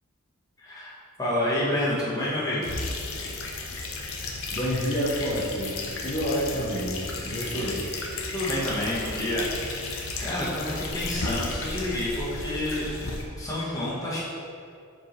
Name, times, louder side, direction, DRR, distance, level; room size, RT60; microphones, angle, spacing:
voice 1, 0.6-2.7 7.5-7.8 8.3-12.9 13.4-14.2, left 1 dB, 15° left, -8 dB, 1.5 m, -29 dB
sound 1, 2.6-13.2, left 3 dB, 65° left, 0.8 m, -34 dB
voice 2, 4.5-7.8, equal, 35° left, -9 dB, 1.0 m, -29 dB
6.9 x 4.6 x 3.3 m, 2.4 s
head